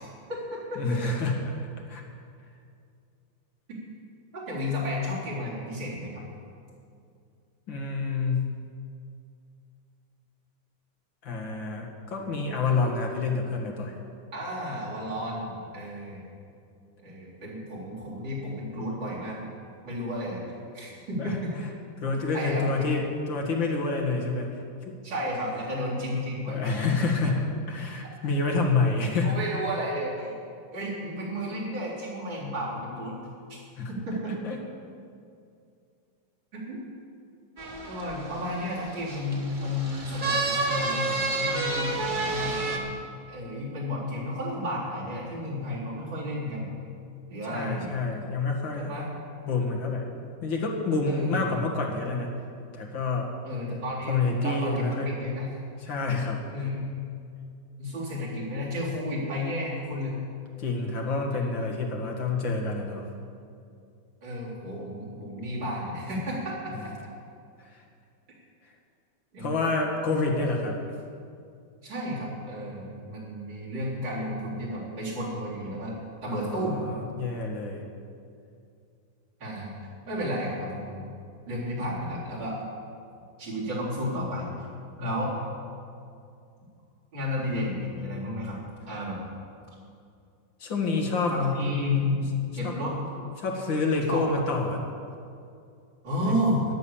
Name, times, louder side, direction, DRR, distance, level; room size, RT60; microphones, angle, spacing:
voice 1, 0.0-0.8 4.5-6.2 14.3-16.2 17.0-19.4 19.8-20.4 20.7-21.5 22.3-22.9 25.0-26.8 29.2-30.3 30.7-33.2 33.5-33.6 33.9-34.3 36.5-36.8 37.9-42.9 43.3-46.7 47.3-48.0 48.7-49.1 51.1-51.6 53.4-55.5 56.5-56.9 57.8-60.2 61.3-61.4 64.2-66.7 69.3-69.5 71.8-76.8 79.4-79.7 80.1-81.1 81.5-82.6 83.4-84.4 85.0-85.4 87.1-88.6 88.9-89.2 91.3-92.2 92.5-92.9 94.1-94.3 96.0-96.7, left 1 dB, 80° right, -7 dB, 4.7 m, -32 dB
voice 2, 0.8-1.3 1.9-2.0 7.7-8.4 11.2-13.9 21.2-21.4 22.0-24.5 24.8-25.0 26.5-27.4 27.7-29.4 33.8-33.9 34.3-34.6 47.5-48.9 49.4-50.1 50.4-52.3 52.7-53.3 54.1-55.1 55.8-56.4 60.6-63.1 66.7-66.9 69.4-70.8 76.3-77.8 85.0-85.1 90.6-91.4 92.6-92.7 93.4-94.8 96.2-96.3, left 3 dB, 90° left, 0 dB, 2.5 m, -28 dB
sound 1, 37.6-42.8, right 3 dB, 30° right, 1.4 m, -30 dB
13.5 x 10.5 x 7.2 m, 2.4 s
omnidirectional pair, 2.0 m